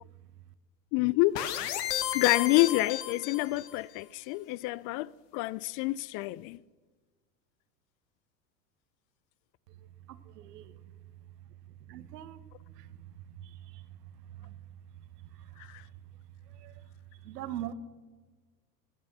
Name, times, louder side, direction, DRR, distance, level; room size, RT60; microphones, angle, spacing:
voice 1, 0.9-1.4 2.1-6.6 15.6-15.8, left 19 dB, 45° left, 0.4 m, -28 dB
sound 1, 1.4-3.8, left 11 dB, 75° left, 1.5 m, -33 dB
voice 2, 9.7-10.9 11.8-14.6 15.2-15.9 16.4-17.7, right 12 dB, 75° right, 1.3 m, -45 dB
21.5 x 11.0 x 6.1 m
hypercardioid pair, 85°, 49 cm